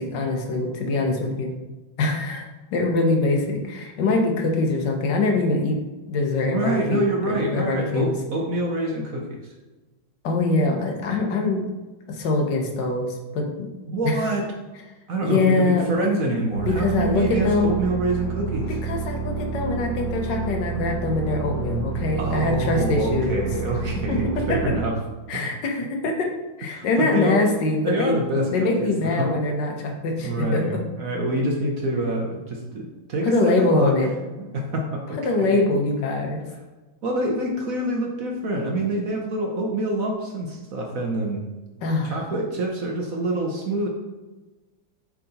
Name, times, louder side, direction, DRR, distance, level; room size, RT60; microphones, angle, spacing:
voice 1, 0.0-1.5 2.0-5.8 6.1-8.2 10.2-11.6 12.1-13.7 15.2-16.1 16.6-17.7 18.8-23.5 24.1-24.7 25.3-26.3 26.6-28.2 28.5-30.8 33.2-34.1 35.2-36.4 41.8-42.2, left 2 dB, 65° left, 2 dB, 1.6 m, -23 dB
voice 2, 6.5-9.5 13.9-14.4 15.1-18.7 22.2-25.0 25.3-25.5 26.7-27.4 27.8-29.3 30.2-30.7 31.0-34.0 34.4-35.4 37.0-41.4 42.0-43.9, right 1 dB, 55° right, 0 dB, 1.0 m, -26 dB
sound 1, 16.5-24.8, right 5 dB, 25° left, 2.3 m, -29 dB
7.2 x 3.8 x 4.1 m, 1.2 s
omnidirectional pair, 2.2 m